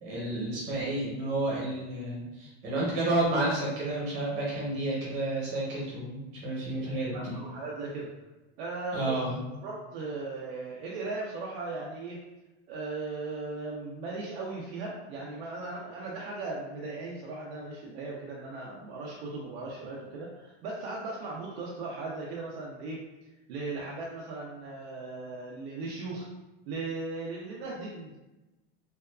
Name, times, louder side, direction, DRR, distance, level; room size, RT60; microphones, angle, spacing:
voice 1, 0.0-7.3 8.9-9.3, right 2 dB, 40° right, -5 dB, 0.9 m, -31 dB
voice 2, 7.1-8.1 8.6-9.2 9.6-12.2 12.7-23.0 23.5-26.3 26.7-28.2, right 3 dB, 70° right, -4 dB, 0.5 m, -37 dB
2.7 x 2.3 x 2.2 m, 1.0 s
supercardioid pair, 175°, 32 cm